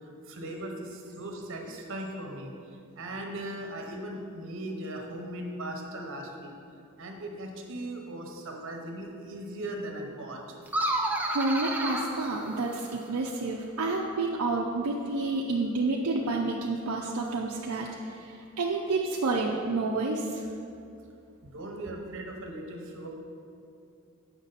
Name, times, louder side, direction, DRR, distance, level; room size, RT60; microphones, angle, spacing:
voice 1, 0.0-2.5 2.9-6.5 7.0-10.6 21.4-23.1, right 1 dB, 60° right, 1 dB, 1.1 m, -38 dB
sound 1, 10.7-13.2, right 1 dB, 5° right, 0.5 m, -31 dB
voice 2, 11.1-20.4, right 3 dB, 75° right, -2 dB, 0.6 m, -29 dB
8.2 x 6.0 x 4.1 m, 2.5 s
head